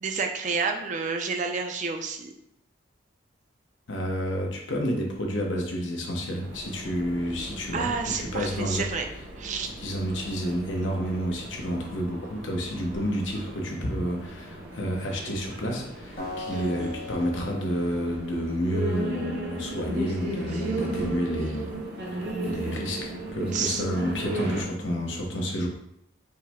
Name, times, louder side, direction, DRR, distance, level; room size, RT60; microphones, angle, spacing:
voice 1, 0.0-2.3 7.7-9.1 9.4-9.7 16.5-17.1 20.5-20.8 23.5-23.8, right 5 dB, 40° right, 5 dB, 0.4 m, -30 dB
voice 2, 3.9-7.9 8.2-8.8 9.8-21.7 22.4-25.7, equal, 80° left, 0 dB, 0.9 m, -30 dB
sound 1, 6.4-24.6, right 1 dB, 60° right, 0.9 m, -36 dB
Acoustic guitar, 16.2-19.3, left 3 dB, 50° left, 1.3 m, -40 dB
5.4 x 2.1 x 3.5 m, 0.76 s
head